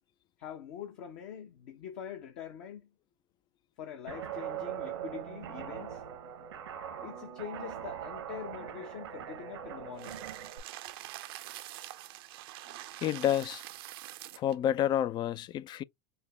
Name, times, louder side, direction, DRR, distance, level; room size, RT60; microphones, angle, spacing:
voice 1, 0.4-2.9 3.8-6.0 7.0-10.3, left 9 dB, 60° left, 1.0 m, -44 dB
Guitar, 4.1-10.6, right 10 dB, 80° right, 1.0 m, -41 dB
sound 1, 10.0-14.6, right 15 dB, 65° right, 0.6 m, -45 dB
voice 2, 13.0-13.6 14.3-15.8, left 11 dB, 35° left, 0.3 m, -29 dB
5.5 x 2.1 x 3.4 m
hypercardioid pair, 95°, 13 cm